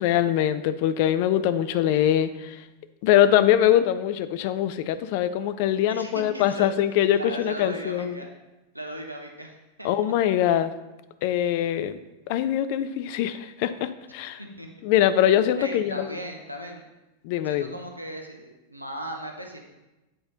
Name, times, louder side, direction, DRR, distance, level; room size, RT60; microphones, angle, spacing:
voice 1, 0.0-2.6 3.0-8.2 9.8-10.7 11.2-12.0 12.3-14.4 14.8-16.1 17.2-17.7, left 11 dB, 50° left, 12 dB, 0.4 m, -23 dB
voice 2, 5.9-6.7 7.1-8.3 8.7-10.1 14.4-14.7 15.6-16.8 17.4-19.7, equal, 85° right, 3 dB, 0.8 m, -37 dB
7.8 x 4.3 x 3.8 m, 1.0 s
figure-of-eight pair, 90°, 0 cm